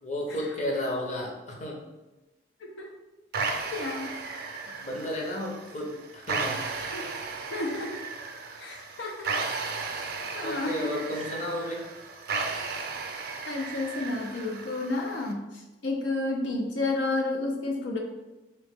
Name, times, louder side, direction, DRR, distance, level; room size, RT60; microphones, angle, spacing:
voice 1, 0.0-1.9 4.7-6.6 10.4-11.9, left 1 dB, 40° left, -1 dB, 0.7 m, -33 dB
voice 2, 2.6-2.9 3.7-4.1 6.9-7.1 7.5-7.9 8.6-9.3 10.0-10.9 13.5-15.4 15.8-18.0, left 2 dB, 85° left, 1 dB, 0.6 m, -31 dB
sound 1, 3.3-15.3, right 4 dB, 55° right, 0.5 m, -35 dB
3.7 x 3.0 x 3.5 m, 1.1 s
head